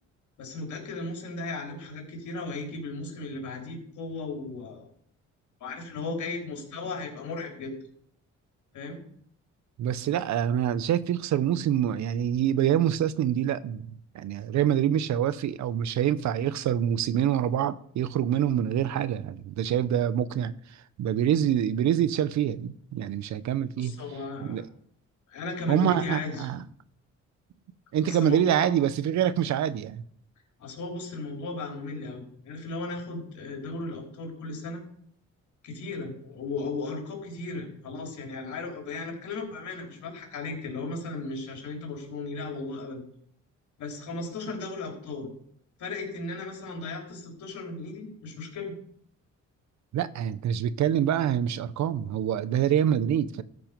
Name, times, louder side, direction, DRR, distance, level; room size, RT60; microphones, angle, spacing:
voice 1, 0.4-4.9 5.6-7.7 8.7-9.0 23.8-24.6 25.3-26.5 28.0-28.7 30.6-34.8 35.6-43.0 43.8-45.3 45.8-48.7, left 3 dB, 75° left, 3.8 m, -36 dB
voice 2, 9.8-20.5 21.0-23.9 24.4-24.6 25.7-26.6 27.9-30.0 49.9-53.4, right 10 dB, 70° right, 0.8 m, -26 dB
13.5 x 6.0 x 5.2 m
cardioid pair, 90°, 30 cm